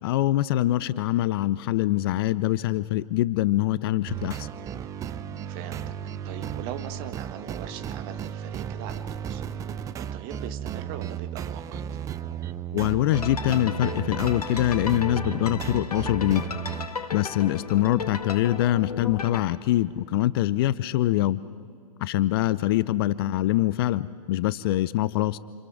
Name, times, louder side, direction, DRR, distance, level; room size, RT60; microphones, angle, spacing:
voice 1, 0.0-4.5 12.7-16.5 17.1-21.4 22.0-25.4, left 14 dB, 40° left, 18 dB, 0.6 m, -24 dB
sound 1, 4.1-16.9, right 9 dB, 15° right, 0.6 m, -34 dB
voice 2, 5.5-5.9 6.2-9.4 9.7-11.8 17.5-17.6, right 10 dB, 35° right, 8 dB, 1.6 m, -41 dB
sound 2, 13.1-19.4, left 5 dB, 75° left, 1.7 m, -35 dB
28.5 x 28.0 x 4.9 m, 2.2 s
figure-of-eight pair, 110°, 20 cm